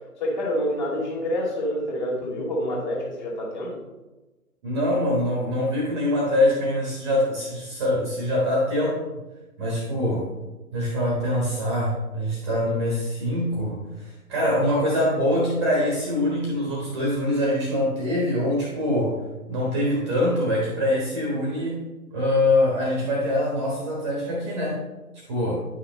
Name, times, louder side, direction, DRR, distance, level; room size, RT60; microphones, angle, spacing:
voice 1, 0.2-3.8, equal, 30° left, -3 dB, 2.4 m, -27 dB
voice 2, 4.6-9.2 9.6-10.3 10.7-19.2 19.5-21.8 22.1-24.8 25.3-25.5, left 1 dB, 20° right, -3 dB, 1.2 m, -24 dB
9.7 x 5.8 x 3.0 m, 1.1 s
figure-of-eight pair, 145°, 45 cm